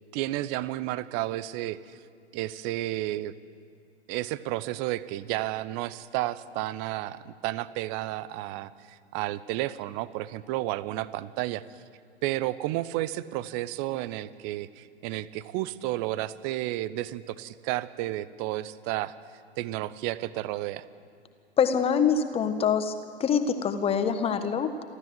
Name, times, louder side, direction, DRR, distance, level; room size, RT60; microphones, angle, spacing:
voice 1, 0.1-2.0 2.3-3.3 4.1-11.6 12.2-19.1 19.6-20.8, right 15 dB, 30° right, 17 dB, 0.7 m, -32 dB
voice 2, 21.6-22.9 23.2-24.8, left 7 dB, 15° left, 9 dB, 1.4 m, -25 dB
28.5 x 13.0 x 7.7 m, 2.3 s
figure-of-eight pair, 110°, 33 cm